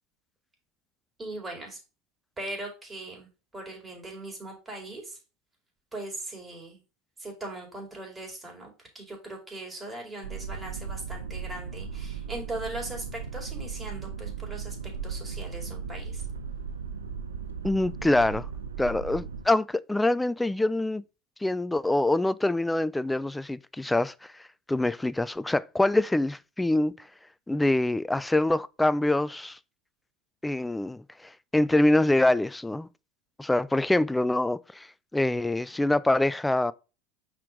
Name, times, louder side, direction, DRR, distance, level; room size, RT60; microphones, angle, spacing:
voice 1, 1.2-1.8 2.4-5.2 5.9-6.8 7.2-14.8 15.0-16.2, right 2 dB, 20° right, 4.2 m, -39 dB
sound 1, 10.2-19.5, right 6 dB, 90° right, 0.9 m, -37 dB
voice 2, 17.6-18.5 18.8-21.0 21.4-24.1 24.7-27.1 27.5-29.6 30.4-32.9 33.4-34.9 35.1-36.7, left 1 dB, 10° left, 0.4 m, -25 dB
5.8 x 4.7 x 5.0 m
hypercardioid pair, 80°, 0 cm